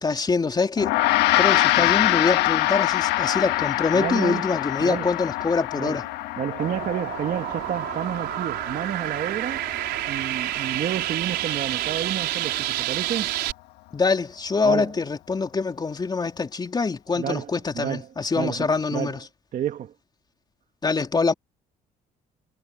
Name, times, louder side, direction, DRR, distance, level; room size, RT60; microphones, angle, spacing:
voice 1, 0.0-0.9 1.4-6.0 13.9-19.2 20.8-21.3, left 4 dB, 25° left, 3.6 m, -24 dB
Gong, 0.8-10.4, left 16 dB, 90° left, 1.5 m, -25 dB
voice 2, 4.0-4.4 4.8-5.1 5.7-6.0 6.4-9.6 10.1-13.3 14.6-14.9 17.1-18.1 18.3-19.2 19.5-19.9, right 10 dB, 55° right, 1.7 m, -30 dB
sound 1, 6.6-13.5, right 15 dB, 80° right, 4.9 m, -29 dB
cardioid pair, 110°, 17 cm